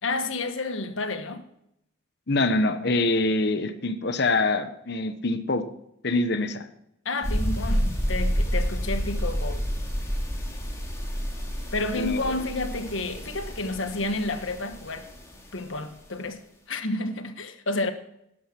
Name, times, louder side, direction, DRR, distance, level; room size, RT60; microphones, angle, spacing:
voice 1, 0.0-1.5 7.0-9.6 11.7-15.1 15.5-16.4 16.7-17.9, left 2 dB, 75° left, 1.3 m, -30 dB
voice 2, 2.3-5.7 6.0-6.7 12.0-12.3, left 2 dB, 55° left, 0.9 m, -25 dB
sound 1, 7.2-15.6, equal, 15° left, 2.3 m, -29 dB
12.0 x 11.0 x 4.4 m
head